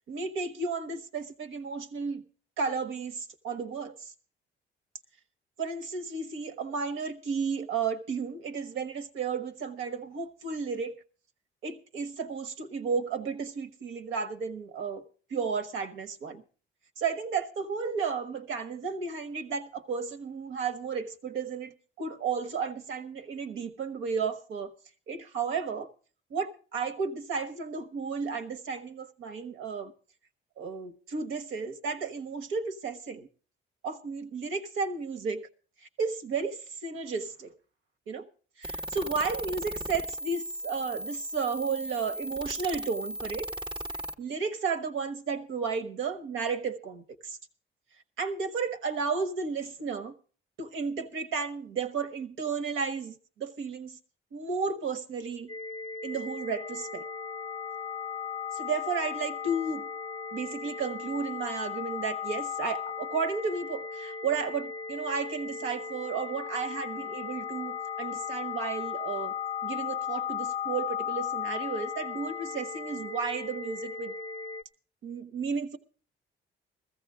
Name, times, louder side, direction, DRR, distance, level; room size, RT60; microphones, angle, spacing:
voice 1, 0.1-2.2 2.6-4.1 5.6-11.0 11.6-15.0 15.3-16.4 17.0-24.7 25.1-25.9 26.3-29.9 30.6-33.3 33.8-35.4 36.0-37.5 38.1-38.2 38.6-43.5 44.2-47.4 48.2-50.1 50.6-54.0 54.3-55.5 56.0-57.0 58.5-59.9 60.3-69.3 69.6-74.1 75.0-75.8, right 5 dB, 85° right, 1.4 m, -33 dB
sound 1, 38.6-44.1, equal, 25° right, 0.8 m, -37 dB
sound 2, 55.5-74.6, left 7 dB, 20° left, 0.6 m, -36 dB
15.5 x 15.0 x 3.7 m
cardioid pair, 90°, 20 cm